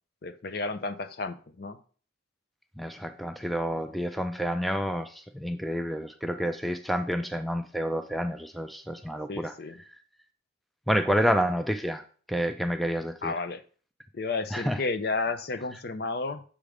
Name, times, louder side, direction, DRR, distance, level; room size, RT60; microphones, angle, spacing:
voice 1, 0.2-1.8 9.3-9.8 11.3-11.4 13.2-13.6 14.1-16.4, left 3 dB, 50° left, 11 dB, 0.5 m, -32 dB
voice 2, 2.8-9.5 10.9-13.3 14.5-14.8, equal, ahead, 7 dB, 0.3 m, -29 dB
7.2 x 3.4 x 4.9 m, 0.41 s
head